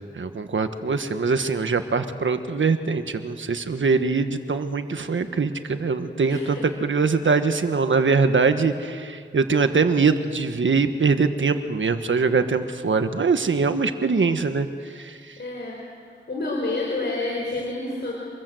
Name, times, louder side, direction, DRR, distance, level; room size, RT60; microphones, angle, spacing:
voice 1, 0.1-15.4, right 4 dB, 85° right, 8 dB, 1.5 m, -23 dB
voice 2, 6.3-6.7 15.4-18.1, left 2 dB, 65° left, -2 dB, 4.3 m, -29 dB
26.5 x 21.5 x 7.9 m, 2.1 s
wide cardioid pair, 90°, 19 cm